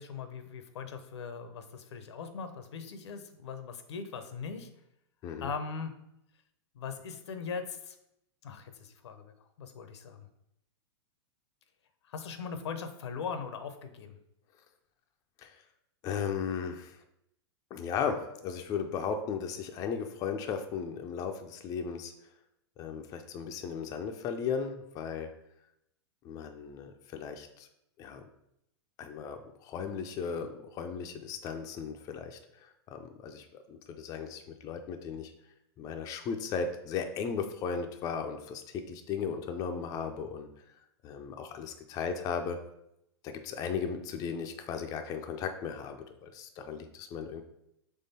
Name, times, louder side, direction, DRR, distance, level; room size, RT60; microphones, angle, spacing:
voice 1, 0.0-4.7 5.4-5.9 6.7-8.0 8.4-10.3 12.0-14.2, left 5 dB, 80° left, 8 dB, 0.6 m, -40 dB
voice 2, 16.0-17.0 17.7-22.1 22.8-25.3 26.2-27.7 28.0-28.2 29.0-35.3 35.8-40.5 41.0-42.6 43.2-47.4, left 6 dB, 25° left, 5 dB, 0.3 m, -36 dB
3.6 x 3.3 x 4.1 m, 0.80 s
hypercardioid pair, 135°, 14 cm